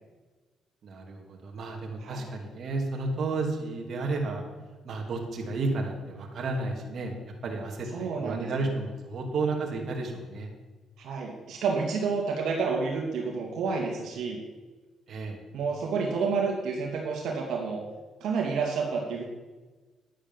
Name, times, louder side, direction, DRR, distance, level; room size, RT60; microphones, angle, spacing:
voice 1, 0.8-4.4 4.8-7.2 7.4-10.5 15.1-15.4, right 3 dB, 55° right, 1 dB, 2.8 m, -32 dB
voice 2, 7.9-8.7 11.0-14.4 15.5-17.8 18.2-19.2, right 5 dB, 75° right, 0 dB, 2.6 m, -29 dB
10.5 x 10.0 x 7.4 m, 1.3 s
cardioid pair, 90°, 0 cm